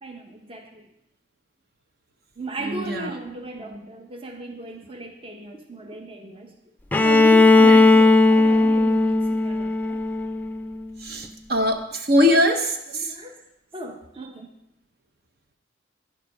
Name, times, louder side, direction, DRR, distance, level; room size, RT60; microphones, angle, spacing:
voice 1, 0.0-0.9 2.4-6.5 7.0-10.0 12.3-12.5 12.9-13.4 13.7-14.5, right 2 dB, 30° right, 4 dB, 0.9 m, -36 dB
Bowed string instrument, 6.9-10.8, left 2 dB, 10° left, 0.5 m, -17 dB
voice 2, 11.0-11.8 12.1-12.7, left 1 dB, 60° right, 6 dB, 0.9 m, -20 dB
9.4 x 7.5 x 5.4 m, 0.81 s
head